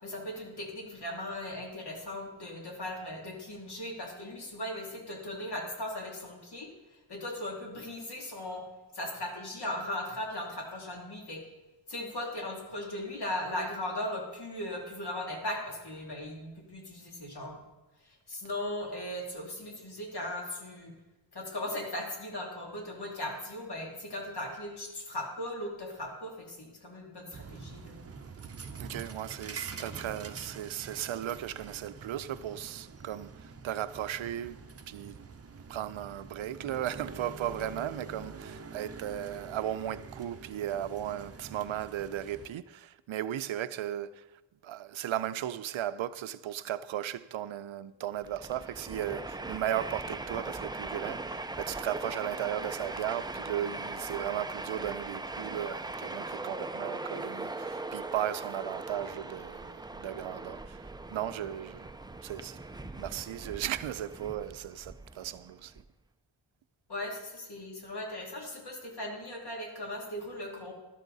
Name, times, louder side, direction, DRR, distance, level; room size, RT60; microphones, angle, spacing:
voice 1, 0.0-6.7 7.1-8.6 8.9-11.4 11.9-17.6 18.0-20.9 21.3-28.0 66.9-70.7, left 1 dB, 55° left, 2.7 m, -38 dB
sound 1, 27.3-42.5, right 5 dB, 30° right, 0.7 m, -46 dB
voice 2, 28.8-34.6 34.9-35.2 35.7-61.9 62.2-65.8, right 11 dB, 80° right, 0.6 m, -36 dB
Train, 48.2-65.8, right 2 dB, 10° right, 0.3 m, -40 dB
13.0 x 11.5 x 4.0 m
wide cardioid pair, 165°, 47 cm